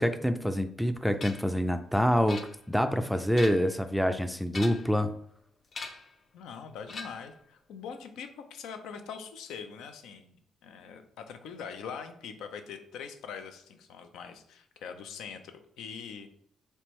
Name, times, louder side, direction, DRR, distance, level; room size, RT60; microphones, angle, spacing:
voice 1, 0.0-5.1, equal, ahead, 8 dB, 0.3 m, -26 dB
sound 1, 1.2-1.5 2.3-2.9 3.2-3.8 4.5-5.0 5.7-6.1 6.9-7.4, left 3 dB, 45° left, 0.6 m, -42 dB
voice 2, 6.3-10.4 10.6-16.3, left 6 dB, 85° left, 7 dB, 0.5 m, -43 dB
4.3 x 3.4 x 3.1 m, 0.70 s
cardioid pair, 90°, 0 cm